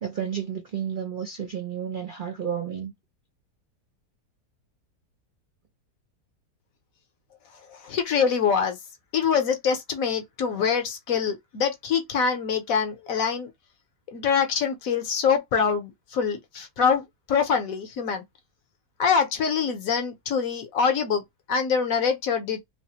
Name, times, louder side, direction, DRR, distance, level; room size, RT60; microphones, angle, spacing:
voice 1, 0.0-2.9, right 8 dB, 70° right, 0.4 m, -31 dB
voice 2, 7.6-8.8 9.1-13.5 14.1-18.2 19.0-21.2 21.5-22.6, left 6 dB, 65° left, 1.0 m, -24 dB
3.2 x 2.0 x 2.7 m
omnidirectional pair, 1.8 m